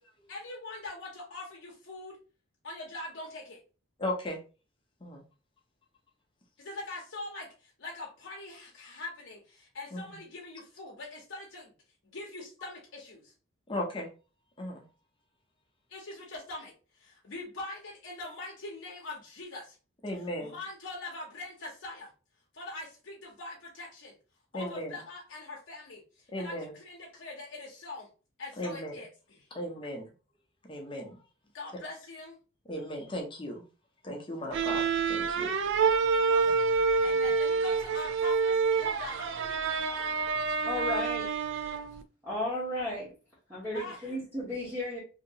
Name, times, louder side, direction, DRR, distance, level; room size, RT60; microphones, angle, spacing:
voice 1, 0.3-2.2 2.6-3.6 6.6-11.7 12.0-13.3 15.9-19.8 20.4-22.1 22.5-24.1 24.5-28.1 28.4-29.5 31.5-32.4 35.9-36.6 37.0-40.1 43.7-44.2, left 2 dB, 65° left, -2 dB, 0.7 m, -43 dB
voice 2, 4.0-4.4 5.0-5.2 9.9-10.2 13.7-14.1 14.6-14.8 20.0-20.6 24.5-25.0 26.3-26.8 28.6-28.9 29.5-30.1 30.7-31.2 32.7-33.6 34.0-35.5 36.4-36.5 37.1-37.3, left 1 dB, 25° left, 1 dB, 0.7 m, -36 dB
sound 1, 34.5-42.0, right 5 dB, 60° right, 0.3 m, -27 dB
voice 3, 40.6-41.3 42.2-43.1 43.5-45.0, left 1 dB, 10° right, -9 dB, 1.0 m, -34 dB
2.8 x 2.8 x 2.8 m, 0.34 s
head